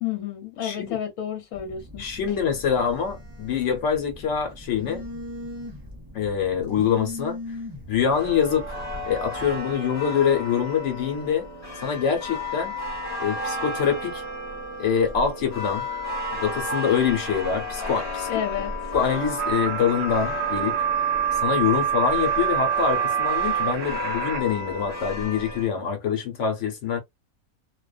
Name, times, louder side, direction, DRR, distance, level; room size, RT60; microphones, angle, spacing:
voice 1, 0.0-2.0 18.3-18.9, left 9 dB, 85° left, 1.2 m, -31 dB
voice 2, 0.6-1.0 2.0-5.1 6.1-7.4 7.9-8.8 9.0-11.5 11.8-12.7 13.2-14.2 14.8-15.8 16.3-18.3 18.9-20.8 21.4-27.0, left 7 dB, 60° left, 1.1 m, -25 dB
Telephone, 1.5-9.6, left 2 dB, 20° right, 0.5 m, -40 dB
sound 1, 8.1-25.7, left 1 dB, 20° left, 1.0 m, -33 dB
sound 2, 19.4-24.4, right 9 dB, 65° right, 0.8 m, -26 dB
2.5 x 2.3 x 2.3 m
omnidirectional pair, 1.5 m